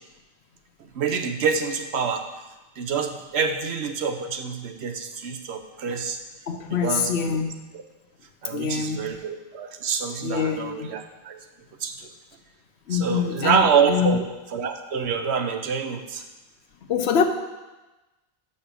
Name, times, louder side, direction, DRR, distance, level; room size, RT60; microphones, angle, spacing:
voice 1, 0.8-2.2 2.8-6.2 6.7-7.4 8.4-11.4 11.8-12.1 12.9-14.2 14.5-16.2, right 6 dB, 85° right, 6 dB, 1.0 m, -26 dB
voice 2, 6.5-7.5 8.5-9.2 10.2-10.9 12.9-14.2 16.9-17.2, left 6 dB, 85° left, 7 dB, 1.0 m, -25 dB
5.9 x 5.6 x 6.7 m, 1.1 s
omnidirectional pair, 1.1 m